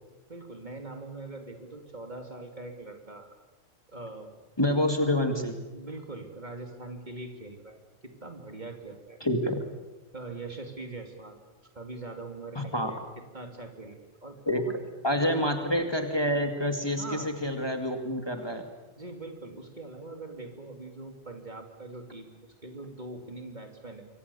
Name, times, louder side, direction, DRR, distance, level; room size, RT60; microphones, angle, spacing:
voice 1, 0.3-3.3 3.9-4.3 5.7-9.2 10.1-11.4 11.7-14.7 15.1-15.7 17.0-17.4 19.0-22.3 22.6-24.1, right 2 dB, 35° right, 4 dB, 2.8 m, -42 dB
voice 2, 4.6-5.6 9.2-9.6 12.6-12.9 14.5-14.6 15.0-18.7, left 1 dB, 20° left, 5 dB, 2.1 m, -27 dB
27.0 x 23.5 x 7.0 m, 1.1 s
omnidirectional pair, 1.3 m